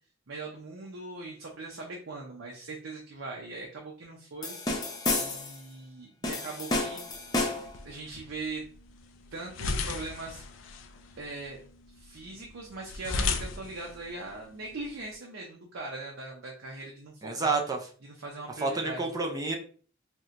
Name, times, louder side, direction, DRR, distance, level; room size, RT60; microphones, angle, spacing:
voice 1, 0.3-4.6 5.1-7.0 7.8-8.7 9.3-10.4 11.2-11.6 11.9-17.6 18.0-19.1, right 3 dB, 75° right, -1 dB, 0.6 m, -40 dB
sound 1, 4.4-5.6 6.2-7.8, left 2 dB, 20° left, 0.7 m, -31 dB
sound 2, 7.1-15.1, left 3 dB, 75° left, 0.4 m, -37 dB
voice 2, 17.2-17.8 18.6-19.6, right 3 dB, 20° right, 2 dB, 0.4 m, -29 dB
4.3 x 2.1 x 2.5 m, 0.43 s
head